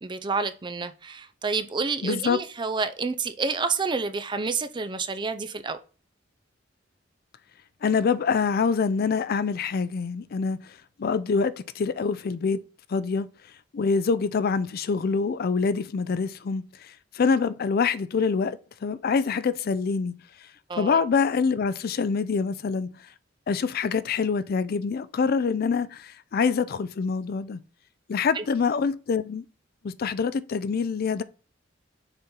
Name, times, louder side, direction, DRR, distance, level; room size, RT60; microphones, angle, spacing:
voice 1, 0.0-5.8 20.7-21.0 28.4-28.5, right 4 dB, 25° right, 0.5 m, -29 dB
voice 2, 2.0-2.4 7.8-12.6 12.9-13.3 13.7-20.2 20.8-22.9 23.5-27.6 28.1-29.4 29.8-31.2, left 5 dB, 50° left, 0.4 m, -25 dB
6.7 x 4.3 x 3.7 m
head